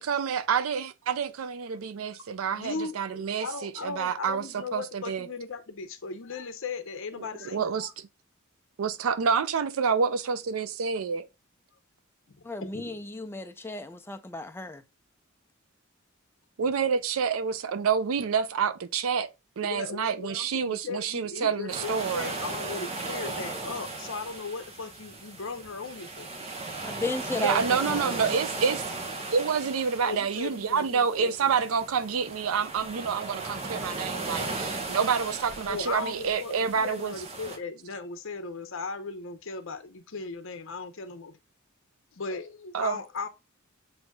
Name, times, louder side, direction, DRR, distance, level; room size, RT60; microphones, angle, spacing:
voice 1, 0.0-5.3 7.2-7.9 8.8-11.3 16.6-19.3 19.6-22.3 27.4-28.8 29.3-37.1 42.7-43.0, right 6 dB, 70° right, 0.4 m, -28 dB
voice 2, 2.5-7.9 12.3-13.0 19.6-26.3 30.0-31.5 35.7-41.3 42.1-43.3, left 4 dB, 65° left, 0.8 m, -37 dB
voice 3, 12.4-14.8 26.8-28.3, left 2 dB, 10° left, 0.5 m, -34 dB
sound 1, 21.7-37.6, right 3 dB, 30° right, 1.0 m, -37 dB
7.7 x 2.8 x 2.3 m
head